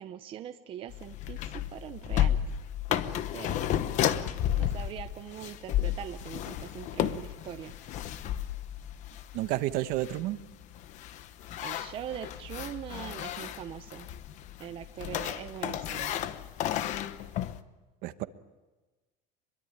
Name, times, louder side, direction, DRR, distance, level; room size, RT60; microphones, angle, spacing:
voice 1, 0.0-2.5 2.9-7.7 11.6-14.1 14.6-16.1 18.2-18.3, right 10 dB, 30° right, 9 dB, 0.7 m, -42 dB
sound 1, 0.9-17.6, left 11 dB, 40° left, 1.0 m, -33 dB
voice 2, 9.3-10.4 18.0-18.2, right 15 dB, 50° right, 12 dB, 1.1 m, -30 dB
24.0 x 22.5 x 8.8 m, 1.2 s
cardioid pair, 180°, 19 cm